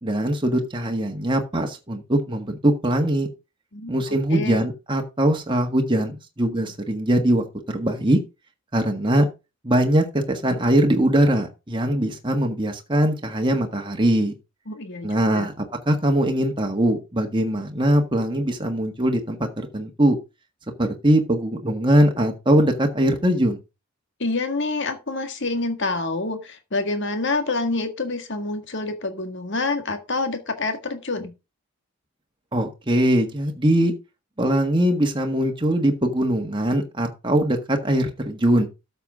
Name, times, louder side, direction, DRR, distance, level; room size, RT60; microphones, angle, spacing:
voice 1, 0.0-3.3 3.9-8.2 8.7-9.3 9.6-14.3 15.0-19.5 19.7-20.2 20.8-23.6 32.5-33.9 34.4-38.7, right 1 dB, 20° right, 3 dB, 1.5 m, -21 dB
voice 2, 4.3-4.6 14.7-15.1 15.3-15.5 24.2-31.3, left 3 dB, 55° left, 7 dB, 1.8 m, -27 dB
12.5 x 6.9 x 3.7 m, 0.27 s
head